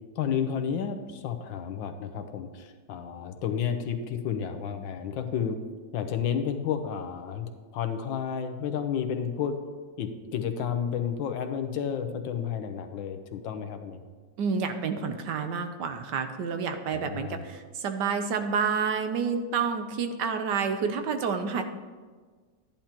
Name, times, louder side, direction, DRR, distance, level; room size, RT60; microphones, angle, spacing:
voice 1, 0.2-5.6 5.9-7.5 7.7-9.5 10.0-14.0 16.9-17.4, left 7 dB, 85° left, 6 dB, 1.6 m, -31 dB
voice 2, 14.4-21.6, right 6 dB, 70° right, 7 dB, 1.3 m, -29 dB
13.0 x 10.5 x 2.9 m, 1.5 s
omnidirectional pair, 2.0 m